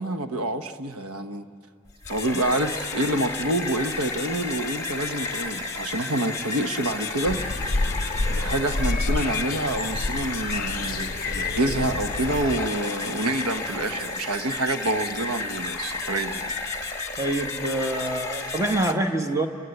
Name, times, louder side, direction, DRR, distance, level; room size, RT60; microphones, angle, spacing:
voice 1, 0.0-1.5 2.1-7.4 8.3-16.5, right 1 dB, 85° right, 9 dB, 1.1 m, -27 dB
sound 1, 1.9-18.9, left 3 dB, 15° left, 1.6 m, -32 dB
sound 2, 7.2-12.7, left 2 dB, 40° left, 0.7 m, -29 dB
voice 2, 17.2-19.5, right 1 dB, 15° right, 5 dB, 1.2 m, -26 dB
30.0 x 22.5 x 8.0 m, 2.3 s
head